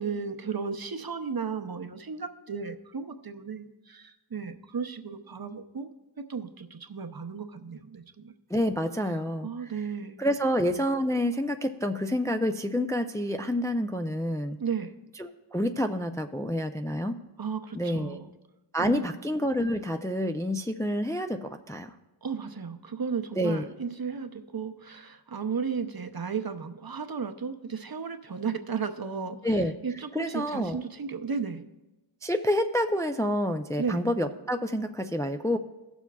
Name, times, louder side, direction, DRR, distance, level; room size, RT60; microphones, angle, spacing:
voice 1, 0.0-5.9 6.2-8.3 9.4-10.2 14.6-14.9 17.4-18.3 18.8-19.2 22.2-29.4 29.8-31.6 33.8-34.0, right 6 dB, 50° right, 8 dB, 0.7 m, -34 dB
voice 2, 8.5-9.5 10.2-14.6 15.2-17.2 17.7-18.2 18.7-21.9 23.4-23.7 29.4-29.7 30.1-30.8 32.2-35.6, equal, 5° left, 6 dB, 0.4 m, -28 dB
17.5 x 7.1 x 2.3 m, 1.0 s
wide cardioid pair, 45°, 48 cm